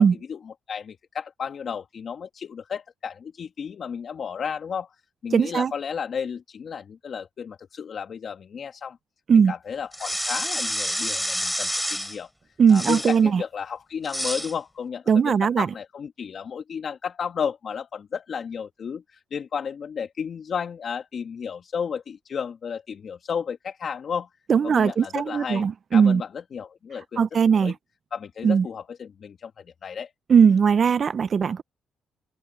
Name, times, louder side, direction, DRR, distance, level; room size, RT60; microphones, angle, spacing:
voice 1, 0.0-4.9 5.2-9.0 9.3-12.3 12.7-24.3 24.6-27.2 27.5-27.7 28.1-30.1, left 7 dB, 50° left, 1.6 m, -33 dB
voice 2, 5.3-5.7 9.3-9.5 12.6-13.4 15.1-15.7 24.5-26.2 27.2-27.7 28.4-28.7 30.3-31.6, right 6 dB, 45° right, 0.7 m, -19 dB
sound 1, 9.9-12.2 12.7-13.2 14.0-14.5, equal, ahead, 4.2 m, -28 dB
cardioid pair, 90°, 0 cm